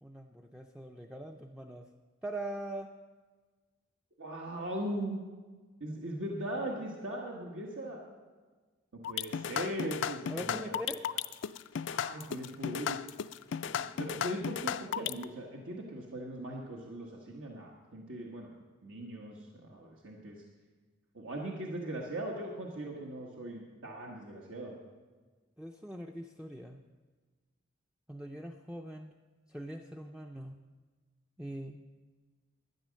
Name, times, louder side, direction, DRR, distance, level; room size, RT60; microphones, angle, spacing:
voice 1, 0.0-1.9 2.2-2.9 10.3-11.0 25.6-26.8 28.1-29.1 29.5-30.6 31.4-31.8, right 1 dB, 5° right, 3 dB, 0.4 m, -42 dB
voice 2, 4.2-5.2 5.8-8.0 8.9-10.7 11.9-13.0 13.6-18.5 18.8-20.4 21.1-24.7, right 1 dB, 80° right, -1 dB, 1.4 m, -39 dB
sound 1, 9.0-15.2, left 8 dB, 65° left, 0.4 m, -35 dB
12.5 x 9.6 x 6.4 m, 1.4 s
head